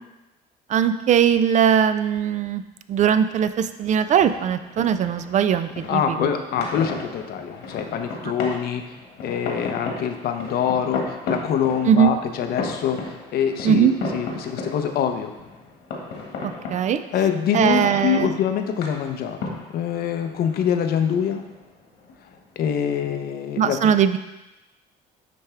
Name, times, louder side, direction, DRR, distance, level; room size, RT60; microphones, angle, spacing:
voice 1, 0.7-2.6 2.9-6.3 11.9-12.1 13.6-13.9 16.4-17.0 17.5-18.3 23.6-24.2, right 8 dB, 45° right, 11 dB, 0.4 m, -20 dB
sound 1, 3.8-23.1, left 3 dB, 80° left, 1.6 m, -35 dB
voice 2, 5.9-8.8 9.2-13.1 13.3-15.3 17.1-21.4 22.6-23.9, left 8 dB, 65° left, 7 dB, 0.6 m, -25 dB
10.0 x 3.4 x 3.4 m, 1.0 s
cardioid pair, 110°, 17 cm